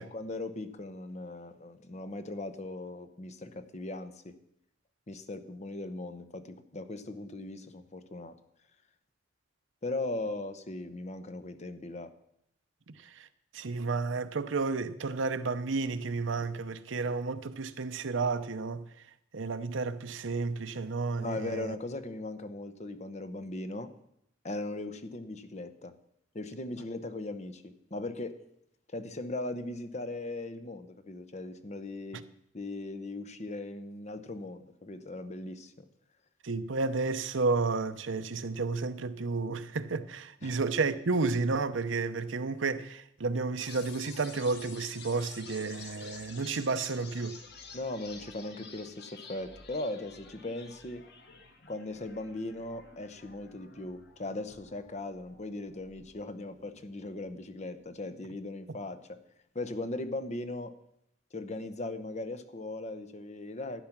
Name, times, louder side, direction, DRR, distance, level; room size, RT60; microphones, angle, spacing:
voice 1, 0.0-4.3 5.1-8.4 9.8-12.1 21.2-23.9 24.4-25.9 26.3-28.4 28.9-32.2 32.5-35.8 40.4-40.6 47.7-51.0 51.7-59.2 59.5-60.8 61.3-63.8, left 2 dB, 35° left, 0.9 m, -38 dB
voice 2, 13.5-18.9 19.3-21.7 36.4-47.4, right 4 dB, 70° right, 0.7 m, -31 dB
sound 1, 43.6-57.6, left 4 dB, 55° left, 1.7 m, -51 dB
12.5 x 9.5 x 6.0 m
head